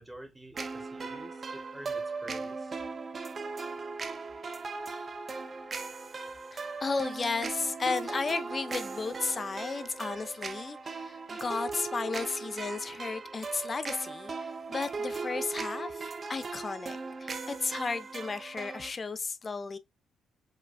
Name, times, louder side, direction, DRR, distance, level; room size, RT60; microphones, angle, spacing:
voice 1, 0.0-2.8, right 1 dB, 10° right, 0.9 m, -48 dB
sound 1, 0.5-18.9, right 4 dB, 40° right, 0.5 m, -38 dB
voice 2, 6.5-19.8, left 4 dB, 35° left, 0.4 m, -34 dB
4.9 x 2.2 x 2.3 m
cardioid pair, 90°, 0 cm